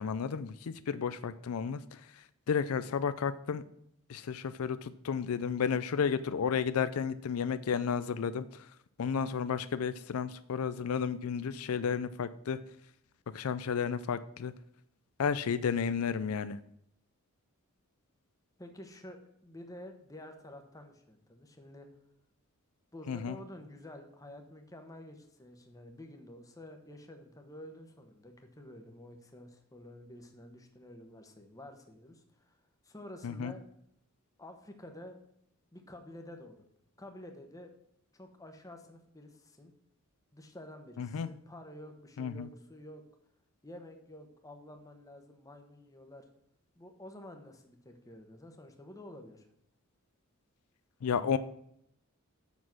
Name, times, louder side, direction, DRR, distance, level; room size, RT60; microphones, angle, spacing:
voice 1, 0.0-2.0 2.5-3.6 4.1-8.7 9.0-12.6 13.3-14.5 15.2-16.6 23.1-23.4 33.2-33.5 41.0-41.3 42.2-42.5 51.0-51.4, left 6 dB, 75° left, 13 dB, 0.4 m, -32 dB
voice 2, 18.6-21.9 22.9-32.6 32.8-33.6 34.4-35.2 35.7-36.6 37.0-37.7 38.1-39.7 40.3-43.0 43.6-46.3 46.8-49.5, left 1 dB, 15° left, 5 dB, 1.1 m, -50 dB
7.3 x 6.2 x 6.1 m, 0.74 s
head